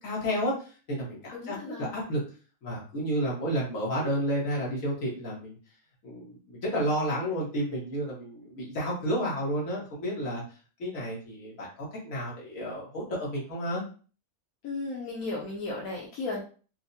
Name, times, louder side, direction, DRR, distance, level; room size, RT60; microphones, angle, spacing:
voice 1, 0.0-2.2 2.6-5.6 6.0-10.4 10.8-13.8, equal, 70° left, -4 dB, 1.8 m, -31 dB
voice 2, 1.3-1.9 14.6-16.4, left 3 dB, 85° left, -3 dB, 1.2 m, -35 dB
4.4 x 2.2 x 2.7 m, 0.38 s
omnidirectional pair, 1.5 m